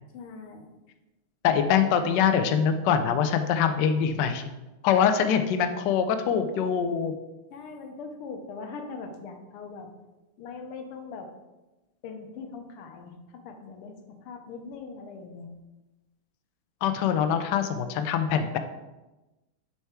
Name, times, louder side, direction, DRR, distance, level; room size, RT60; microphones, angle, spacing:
voice 1, 0.1-0.7 7.5-9.9 10.4-11.3 12.0-15.5, left 4 dB, 90° left, 5 dB, 1.7 m, -41 dB
voice 2, 1.4-4.4 4.8-7.1 16.8-18.6, left 7 dB, 70° left, 8 dB, 1.0 m, -24 dB
6.7 x 4.7 x 4.3 m, 1.1 s
omnidirectional pair, 2.4 m